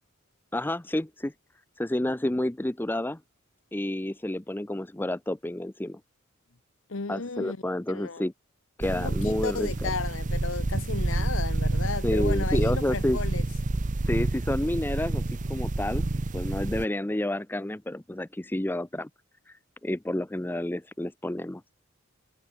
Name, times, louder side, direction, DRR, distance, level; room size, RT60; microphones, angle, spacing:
voice 1, 0.5-1.3 1.8-3.2 3.7-6.0 7.1-8.3 8.8-9.9 12.0-13.2 14.1-15.2 15.5-16.1 16.3-19.1 19.5-19.6 19.8-21.7, left 1 dB, 10° left, 0.6 m, -30 dB
voice 2, 6.9-7.6 7.9-8.2 8.9-13.4, left 4 dB, 70° left, 1.1 m, -34 dB
sound 1, 8.8-16.8, right 2 dB, 40° right, 0.7 m, -28 dB
head